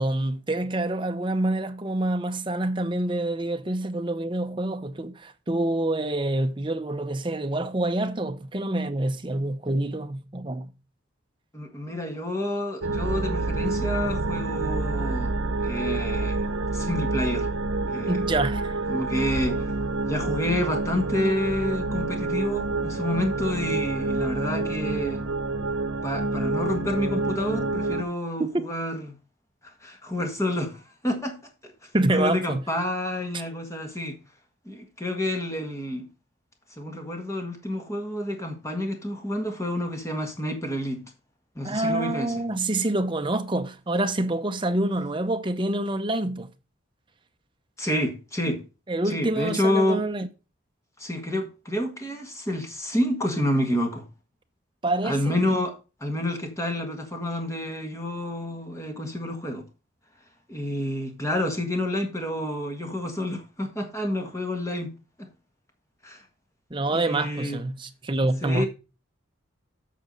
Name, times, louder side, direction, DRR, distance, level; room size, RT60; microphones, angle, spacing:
voice 1, 0.0-10.7 18.1-18.8 31.9-32.7 41.6-46.5 48.9-50.3 54.8-55.4 66.7-68.6, right 2 dB, 25° right, 0.7 m, -27 dB
voice 2, 11.5-15.4 15.6-16.4 16.7-17.5 17.9-18.2 18.9-19.7 20.0-25.3 26.0-29.0 29.6-31.4 31.6-34.2 34.6-36.1 36.7-41.0 41.5-42.4 47.8-48.6 49.0-50.0 51.0-54.1 55.0-59.6 60.5-64.9 65.2-65.3 66.0-66.2 66.9-67.6 68.4-68.7, left 1 dB, 15° left, 1.6 m, -29 dB
sound 1, 12.8-28.0, right 2 dB, 75° right, 0.9 m, -28 dB
8.4 x 6.1 x 5.2 m
head